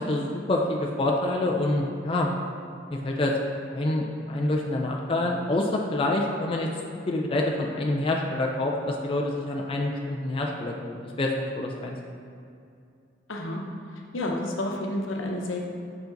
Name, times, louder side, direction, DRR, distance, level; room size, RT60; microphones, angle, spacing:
voice 1, 0.1-2.3 2.9-3.3 3.7-6.7 7.1-12.0, left 2 dB, 25° left, -1 dB, 0.4 m, -27 dB
voice 2, 13.3-13.6 14.1-15.6, left 1 dB, 85° left, 0 dB, 0.8 m, -30 dB
5.2 x 4.8 x 3.9 m, 2.5 s
head